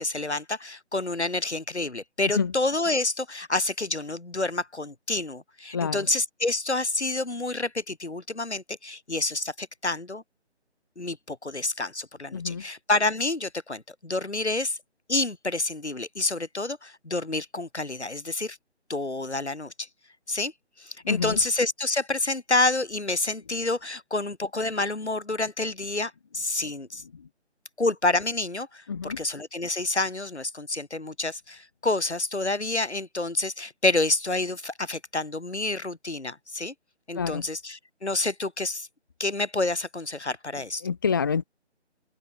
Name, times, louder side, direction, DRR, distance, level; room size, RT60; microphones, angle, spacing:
voice 1, 0.0-10.2 11.0-14.8 15.1-18.6 18.9-19.9 20.3-20.5 20.8-27.0 27.8-36.7 37.1-38.9 39.2-40.8, left 2 dB, 70° left, 7.3 m, -28 dB
voice 2, 5.7-6.1 12.3-12.6 21.0-21.4 27.1-27.3 28.9-29.2 37.1-37.5 40.8-41.4, left 6 dB, 20° left, 1.2 m, -27 dB
open air
figure-of-eight pair, 155°, 35 cm